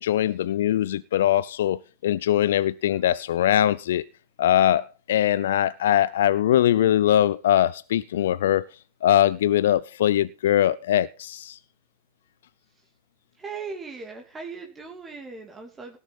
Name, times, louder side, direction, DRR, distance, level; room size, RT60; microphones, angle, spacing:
voice 1, 0.0-4.0 4.4-8.6 9.0-11.6, left 11 dB, 65° left, 0.5 m, -22 dB
voice 2, 13.4-16.0, right 4 dB, 20° right, 2.6 m, -38 dB
18.0 x 7.3 x 5.7 m
figure-of-eight pair, 95°, 0 cm